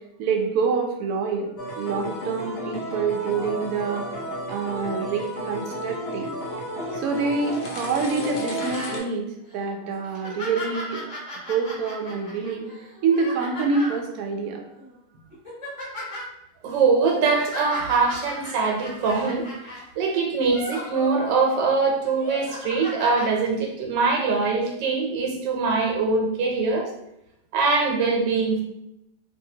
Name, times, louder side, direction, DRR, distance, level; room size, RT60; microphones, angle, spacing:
voice 1, 0.2-1.5 1.8-4.1 4.5-6.3 6.9-11.0 11.3-12.7 13.0-14.6, right 5 dB, 70° right, 2 dB, 1.0 m, -26 dB
sound 1, 1.6-9.0, equal, 70° left, 0.6 m, -32 dB
sound 2, 8.6-9.0 9.5-9.6 10.0-14.0 14.8-14.9 15.3-16.3 17.0-19.8 20.4-21.6 22.1-23.3 24.2-24.3, left 1 dB, 25° left, 0.8 m, -36 dB
voice 2, 16.6-19.5 20.0-26.9 27.5-28.6, right 4 dB, 90° right, 1 dB, 1.4 m, -23 dB
2.8 x 2.7 x 2.7 m, 0.83 s
omnidirectional pair, 1.9 m